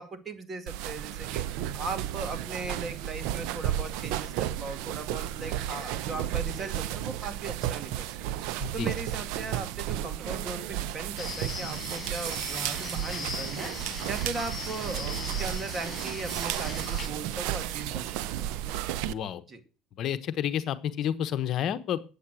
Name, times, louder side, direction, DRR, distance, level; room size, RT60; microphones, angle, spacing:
voice 1, 0.0-1.4 1.7-8.2 8.7-18.1 18.4-18.5 19.5-19.6, right 3 dB, 30° right, 7 dB, 2.1 m, -38 dB
sound 1, 0.7-19.1, right 12 dB, 75° right, 0.6 m, -33 dB
sound 2, 6.1-6.9 10.2-11.0 13.6-14.0 15.8-16.5 18.4-18.6, right 8 dB, 50° right, 1.1 m, -47 dB
voice 2, 8.6-8.9 19.1-19.4 20.0-22.0, left 9 dB, 55° left, 10 dB, 1.0 m, -30 dB
sound 3, 11.2-17.1, left 5 dB, 25° left, 5.4 m, -39 dB
8.6 x 8.5 x 6.2 m, 0.35 s
supercardioid pair, 105°, 0 cm